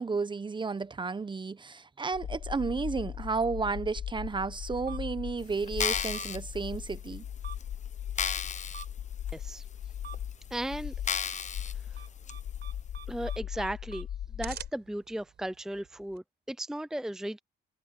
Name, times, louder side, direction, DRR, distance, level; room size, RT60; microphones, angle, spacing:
voice 1, 0.0-7.2, right 4 dB, 25° right, 1.0 m, -32 dB
sound 1, 2.1-14.7, left 10 dB, 70° left, 2.0 m, -39 dB
sound 2, 2.2-16.2, right 8 dB, 60° right, 5.3 m, -51 dB
sound 3, 5.7-6.4 7.1-7.2 7.6-7.7 8.2-8.8 9.3-9.4 10.1-10.2 11.0-11.7 12.3-12.4, left 7 dB, 40° left, 0.8 m, -32 dB
voice 2, 9.3-9.6 10.5-10.9 13.1-14.1 14.4-17.4, right 1 dB, 5° right, 0.7 m, -36 dB
cardioid pair, 95°, 20 cm